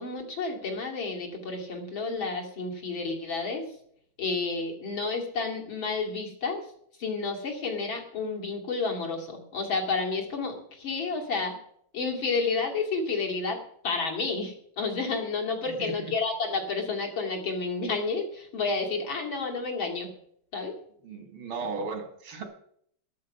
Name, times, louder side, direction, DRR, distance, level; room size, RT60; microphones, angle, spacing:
voice 1, 0.0-3.6 4.2-6.6 7.0-11.5 11.9-13.6 13.8-20.1 20.5-20.7, left 4 dB, 75° left, 0 dB, 3.5 m, -30 dB
voice 2, 15.8-16.1 21.0-22.4, right 4 dB, 90° right, 6 dB, 2.8 m, -36 dB
13.0 x 12.5 x 5.5 m, 0.67 s
omnidirectional pair, 2.2 m